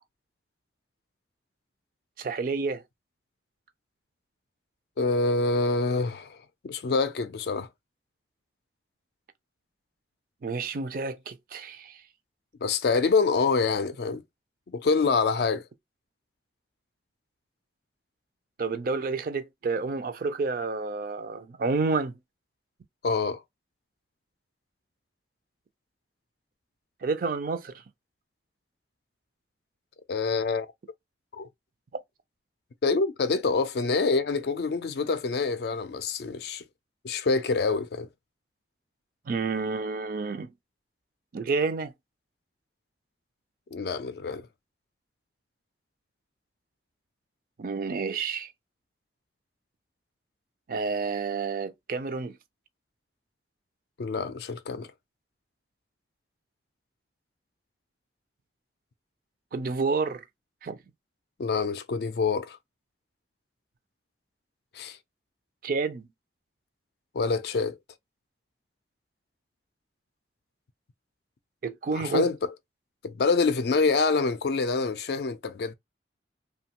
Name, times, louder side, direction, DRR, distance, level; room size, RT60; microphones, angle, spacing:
voice 1, 2.2-2.8 10.4-12.0 18.6-22.1 27.0-27.7 39.3-40.5 41.3-41.9 47.6-48.5 50.7-52.4 59.5-60.2 60.6-60.8 65.6-66.1 71.6-72.3, right 4 dB, 50° right, 0.4 m, -29 dB
voice 2, 5.0-6.4 6.6-7.7 12.6-14.2 14.7-15.6 23.0-23.4 30.1-30.7 31.3-31.5 32.8-36.6 37.0-38.1 43.7-44.5 54.0-54.9 61.4-62.6 64.7-65.0 67.1-67.8 71.9-72.5 73.0-75.7, left 4 dB, 60° left, 0.4 m, -26 dB
2.8 x 2.2 x 2.8 m
head